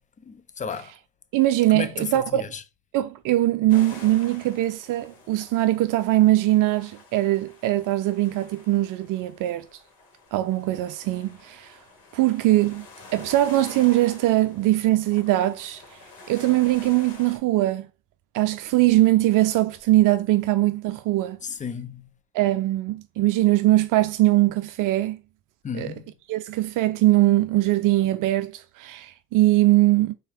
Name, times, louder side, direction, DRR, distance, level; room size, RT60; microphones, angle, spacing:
voice 1, 0.2-0.9 1.7-2.6 21.4-22.0 25.6-26.0, left 6 dB, 20° left, 0.6 m, -33 dB
voice 2, 1.3-2.5 2.9-9.7 10.3-11.8 12.1-12.9 13.1-15.8 16.3-17.9 18.3-21.4 22.3-25.2 25.7-25.9 26.3-30.1, right 16 dB, 50° right, 0.5 m, -21 dB
sound 1, 3.7-17.4, left 3 dB, 55° left, 2.6 m, -47 dB
4.5 x 3.8 x 3.1 m
hypercardioid pair, 75°, 40 cm